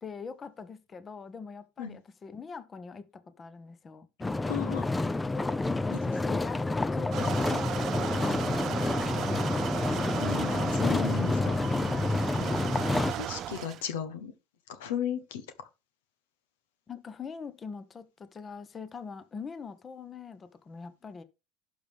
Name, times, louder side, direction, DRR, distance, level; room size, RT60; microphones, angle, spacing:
voice 1, 0.0-4.1 4.6-5.3 6.2-9.8 12.0-12.4 16.9-21.2, left 5 dB, 30° left, 1.0 m, -43 dB
sound 1, 4.2-13.1, left 2 dB, 15° left, 0.5 m, -28 dB
voice 2, 4.5-4.8 5.9-6.2 10.2-11.6 12.4-12.5 13.1-14.3 14.7-15.7, left 8 dB, 85° left, 1.0 m, -35 dB
sound 2, 7.1-13.8, right 12 dB, 50° right, 0.3 m, -36 dB
11.5 x 5.3 x 3.5 m
supercardioid pair, 95°, 0 cm